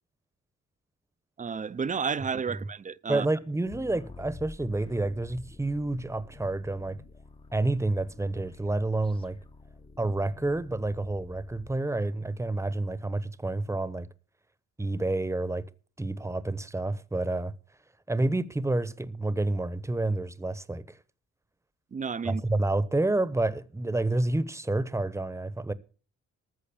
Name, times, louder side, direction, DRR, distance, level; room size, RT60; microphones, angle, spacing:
voice 1, 1.4-3.3 21.9-22.4, right 6 dB, 25° right, 0.6 m, -31 dB
voice 2, 3.1-7.0 7.5-9.4 10.0-14.1 14.8-15.6 16.0-17.5 18.1-21.0 22.2-25.7, right 2 dB, 10° right, 1.0 m, -29 dB
sound 1, 3.7-11.8, left 3 dB, 20° left, 0.8 m, -49 dB
14.0 x 6.4 x 8.5 m
cardioid pair, 90°, 30 cm